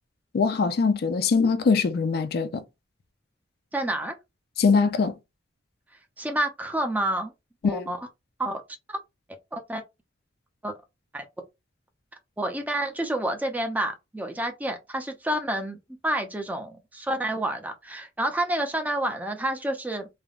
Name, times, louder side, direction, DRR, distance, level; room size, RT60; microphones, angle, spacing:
voice 1, 0.3-2.6 4.6-5.1 7.6-7.9, left 5 dB, 55° left, 0.4 m, -22 dB
voice 2, 3.7-4.2 6.2-7.3 7.6-8.0 8.4-8.6 8.9-9.0 9.5-9.8 10.6-10.7 11.1-11.3 12.4-15.8 16.0-20.1, right 1 dB, 10° right, 0.4 m, -29 dB
3.3 x 2.0 x 2.4 m
head